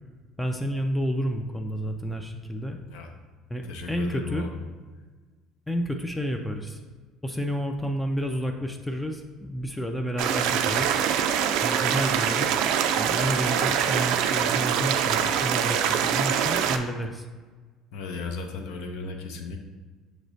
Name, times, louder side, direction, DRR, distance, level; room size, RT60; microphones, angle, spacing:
voice 1, 0.4-2.8 3.5-4.5 5.7-6.8 7.2-11.0 11.6-12.6 12.9-17.3, equal, 5° left, 4 dB, 0.3 m, -30 dB
voice 2, 3.7-4.6 17.9-19.6, left 3 dB, 80° left, 4 dB, 0.6 m, -35 dB
sound 1, 10.2-16.8, right 8 dB, 75° right, 0.3 m, -24 dB
6.4 x 3.1 x 2.6 m, 1.4 s
cardioid pair, 125°, 0 cm